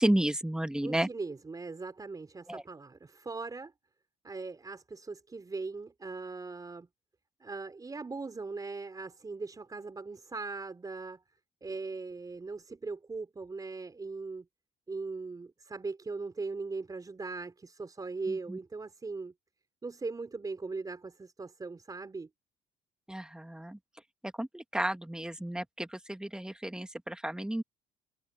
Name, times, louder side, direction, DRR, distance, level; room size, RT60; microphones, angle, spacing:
voice 1, 0.0-1.1 2.5-2.6 18.5-18.6 23.1-23.8 24.4-27.6, right 1 dB, 5° right, 1.5 m, -32 dB
voice 2, 0.8-3.7 4.2-6.9 7.4-11.2 11.6-14.5 14.9-19.3 19.8-22.3, right 3 dB, 20° right, 4.2 m, -39 dB
cardioid pair, 110°, 17 cm